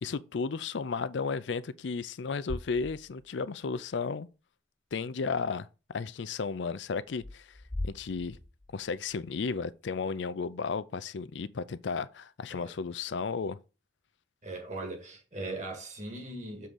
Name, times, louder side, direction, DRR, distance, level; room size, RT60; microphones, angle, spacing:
voice 1, 0.0-4.3 4.9-5.7 5.9-7.5 7.8-8.4 8.7-13.6, left 5 dB, 75° left, 0.5 m, -34 dB
sound 1, 2.5-3.5 3.8-3.9 7.1-9.1, left 2 dB, 15° left, 0.5 m, -40 dB
voice 2, 14.4-16.7, right 2 dB, 40° right, 2.0 m, -39 dB
6.9 x 3.7 x 6.1 m
head